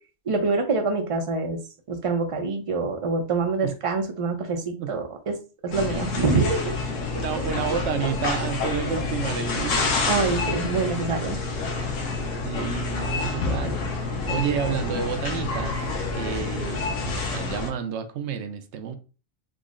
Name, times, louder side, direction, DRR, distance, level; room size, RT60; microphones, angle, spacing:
voice 1, 0.3-1.6 1.9-5.4 5.6-6.7 10.1-11.4, right 4 dB, 40° right, 0.5 m, -25 dB
sound 1, 5.7-17.7, left 3 dB, 90° left, 1.1 m, -28 dB
voice 2, 7.1-9.9 12.4-15.8 16.1-19.0, right 7 dB, 70° right, 0.8 m, -30 dB
3.7 x 2.0 x 3.6 m
omnidirectional pair, 1.3 m